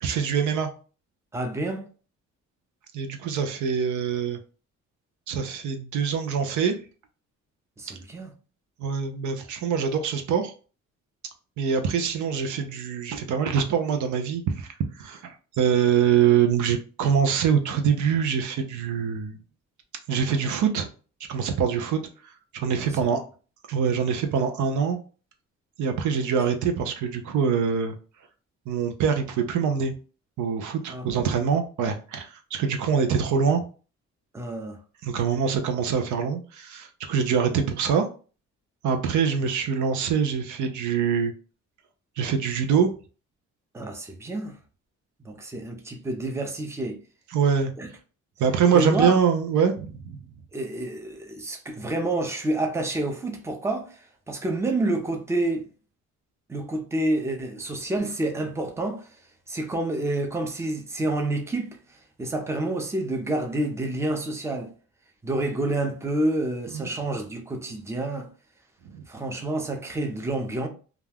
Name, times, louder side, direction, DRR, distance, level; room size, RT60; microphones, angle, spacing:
voice 1, 0.0-0.7 2.9-4.4 5.3-6.8 8.8-10.5 11.6-14.7 15.0-19.4 20.1-20.9 21.3-22.0 22.5-23.2 23.7-25.0 25.8-28.0 28.7-29.9 30.4-33.6 35.0-38.1 38.8-41.3 42.2-42.9 47.3-47.7 48.4-50.2 66.7-66.9 68.9-69.0, right 7 dB, 75° right, 0.6 m, -24 dB
voice 2, 1.3-1.9 7.8-8.3 22.8-23.2 30.9-31.3 34.3-34.8 37.5-37.6 43.7-44.6 45.2-47.0 47.8-47.9 48.7-49.2 50.5-55.7 56.5-59.1 59.5-64.7 65.2-68.3 69.1-70.7, right 2 dB, 10° right, 0.6 m, -28 dB
2.4 x 2.1 x 3.3 m
cardioid pair, 90°, 30 cm